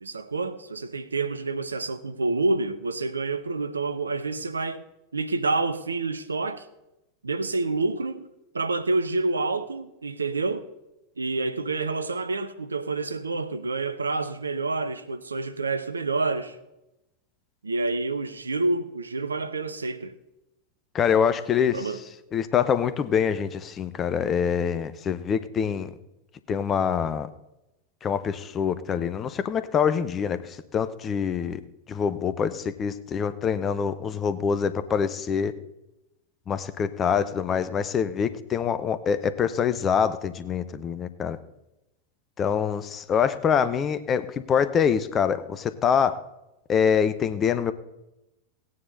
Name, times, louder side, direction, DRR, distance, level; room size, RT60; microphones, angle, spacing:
voice 1, 0.0-4.8 5.1-6.7 7.2-8.3 8.5-10.7 11.2-16.6 17.6-20.1 21.7-22.0, right 3 dB, 75° right, 0.8 m, -28 dB
voice 2, 20.9-21.9 22.3-25.9 26.5-27.3 28.0-31.6 31.9-35.5 36.5-41.4 42.4-46.2 46.7-47.7, left 7 dB, 25° left, 0.8 m, -25 dB
17.5 x 9.6 x 4.0 m
figure-of-eight pair, 90°, 0 cm